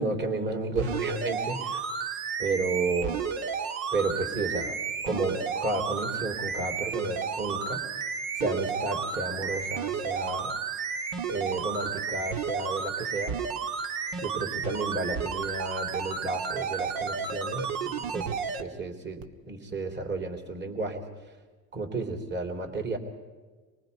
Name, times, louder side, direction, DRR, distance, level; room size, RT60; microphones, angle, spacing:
voice 1, 0.0-1.8 2.4-3.2 3.9-4.8 5.0-7.8 8.4-10.5 11.3-13.4 14.2-18.3 18.6-21.0 21.7-23.0, right 3 dB, 25° right, 2 dB, 3.5 m, -32 dB
sound 1, 0.7-18.6 19.2-19.3, right 6 dB, 75° right, 2.0 m, -32 dB
26.5 x 19.5 x 5.4 m, 1.4 s
supercardioid pair, 100°, 43 cm